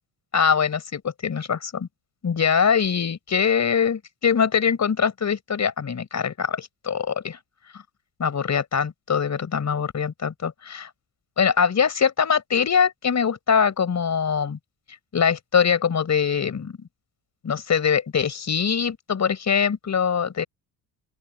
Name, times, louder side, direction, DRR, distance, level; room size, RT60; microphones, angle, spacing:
voice 1, 0.3-1.9 2.2-7.4 8.2-10.9 11.4-14.6 15.1-16.9 17.4-20.4, left 7 dB, 40° left, 5.0 m, -23 dB
open air
supercardioid pair, 75°, 43 cm